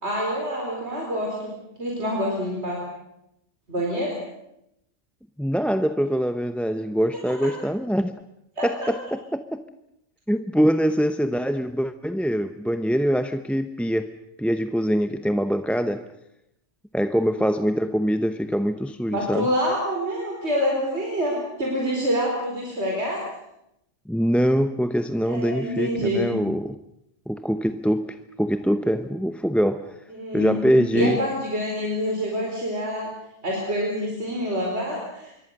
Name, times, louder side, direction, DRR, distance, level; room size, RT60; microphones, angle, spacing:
voice 1, 0.0-2.8 3.7-4.2 8.6-8.9 17.1-17.4 19.1-23.2 25.3-26.3 30.1-30.5 30.9-33.1 33.4-35.3, equal, 65° right, 4.8 m, -27 dB
voice 2, 5.4-8.1 8.6-9.6 10.3-14.1 14.4-16.0 16.9-19.5 24.1-26.7 27.3-29.9 30.3-31.2, equal, ahead, 0.7 m, -23 dB
26.0 x 22.5 x 6.6 m
omnidirectional pair, 1.2 m